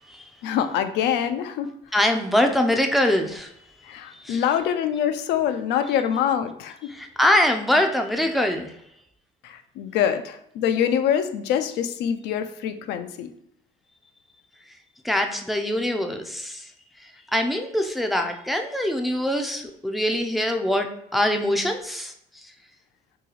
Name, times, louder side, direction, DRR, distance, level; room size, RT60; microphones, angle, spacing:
voice 1, 0.4-1.7 3.8-6.9 9.4-13.3, left 9 dB, 80° left, 8 dB, 0.4 m, -25 dB
voice 2, 1.9-3.5 3.9-4.4 6.9-8.7 15.0-16.7 17.3-22.5, left 1 dB, ahead, 4 dB, 0.4 m, -23 dB
2.9 x 2.7 x 3.9 m, 0.74 s
cardioid pair, 110°, 17 cm